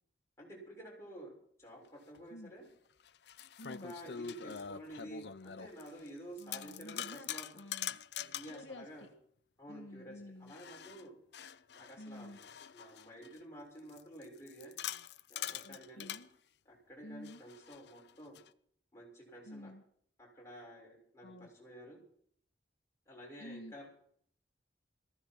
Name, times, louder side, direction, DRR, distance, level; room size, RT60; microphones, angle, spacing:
voice 1, 0.4-1.3 1.6-2.6 3.8-7.5 8.2-9.1 9.6-11.1 11.7-12.4 12.7-14.7 15.3-16.1 16.6-18.4 18.9-19.7 20.2-22.0 23.1-23.9, right 1 dB, 15° left, -3 dB, 6.3 m, -51 dB
sound 1, 2.2-2.3 3.0-6.1 6.4-8.6 10.5-13.4 13.9-16.3 17.3-18.5, left 9 dB, 65° left, 0.6 m, -44 dB
voice 2, 3.6-3.9 6.4-7.3 7.5-8.0 8.5-9.1 9.7-10.5 12.0-12.4 15.6-16.3 17.0-17.4 19.4-19.8 21.2-21.5 23.4-23.7, left 1 dB, 85° left, 5 dB, 1.4 m, -50 dB
18.5 x 15.5 x 4.6 m, 0.62 s
head